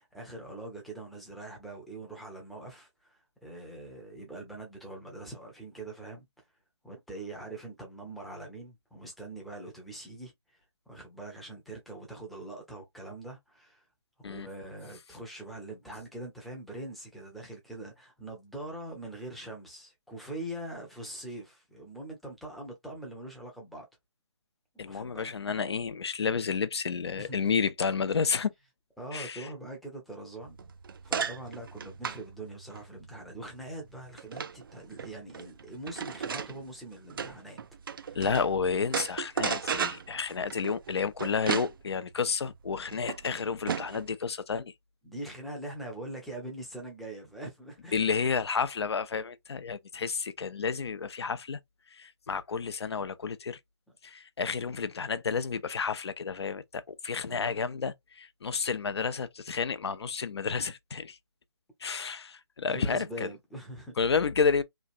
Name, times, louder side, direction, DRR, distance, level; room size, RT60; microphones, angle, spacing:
voice 1, 0.0-6.3 6.8-10.3 10.9-13.8 14.2-23.9 24.8-25.3 27.2-27.4 29.0-30.7 31.0-37.6 37.9-38.2 45.0-48.0 57.3-57.7 62.6-63.9, right 1 dB, ahead, 0.6 m, -43 dB
voice 2, 24.8-28.5 29.1-29.5 38.1-44.7 47.9-51.6 51.9-53.6 54.0-61.2 61.8-63.3 64.0-64.6, left 5 dB, 65° left, 0.6 m, -31 dB
sound 1, 30.4-38.5 38.8-44.1, right 6 dB, 50° right, 0.4 m, -36 dB
3.1 x 2.4 x 2.5 m
figure-of-eight pair, 155°, 15 cm